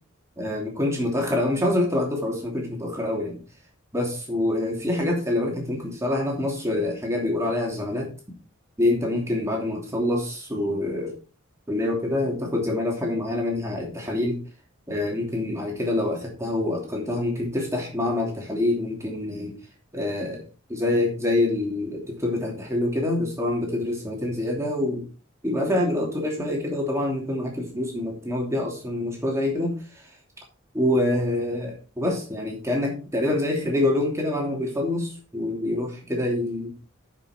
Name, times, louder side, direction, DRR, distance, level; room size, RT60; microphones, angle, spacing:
voice 1, 0.4-3.4 3.9-8.1 8.8-11.2 11.7-14.4 14.9-19.6 19.9-25.0 25.4-29.7 30.7-36.7, left 1 dB, 15° right, -1 dB, 2.9 m, -26 dB
10.0 x 5.9 x 4.4 m, 0.35 s
head